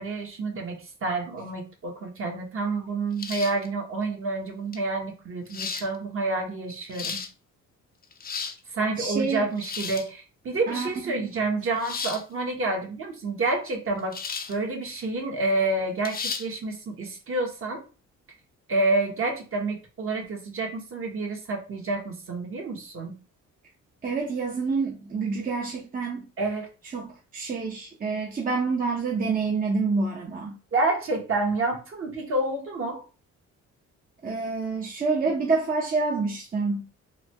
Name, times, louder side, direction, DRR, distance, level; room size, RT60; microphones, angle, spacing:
voice 1, 0.0-7.2 8.7-14.2 14.5-17.8 18.7-23.1 26.4-26.7 30.7-33.0, right 2 dB, 45° right, 1.2 m, -28 dB
sound 1, 3.2-3.7 4.7-4.8 5.5-5.9 6.7-7.3 8.0-8.6 9.6-10.1 11.8-12.2 14.1-14.6 15.0-15.1 16.0-16.5, left 5 dB, 30° left, 0.5 m, -33 dB
voice 2, 9.0-9.5 10.7-11.3 24.0-26.2 26.9-30.6 34.2-36.9, right 4 dB, 30° right, 0.7 m, -27 dB
3.9 x 2.2 x 3.1 m
cardioid pair, 90°, 30 cm